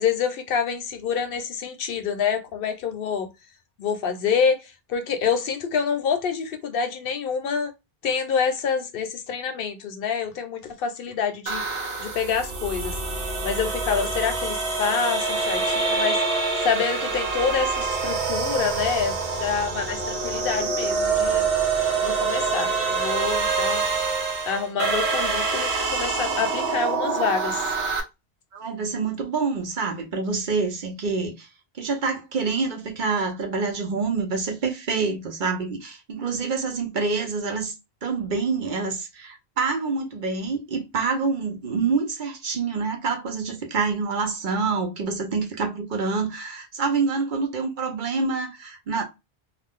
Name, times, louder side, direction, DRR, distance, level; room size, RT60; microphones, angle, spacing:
voice 1, 0.0-3.3 3.8-7.7 8.0-11.6 12.0-13.0 13.4-16.2 16.6-21.4 22.0-23.8 24.5-27.6, left 6 dB, 70° left, 0.8 m, -27 dB
sound 1, 11.5-28.0, right 4 dB, 85° right, 1.0 m, -26 dB
voice 2, 28.5-31.5 31.7-37.7 38.0-49.0, right 4 dB, 55° right, 0.8 m, -27 dB
2.4 x 2.3 x 3.5 m
omnidirectional pair, 1.0 m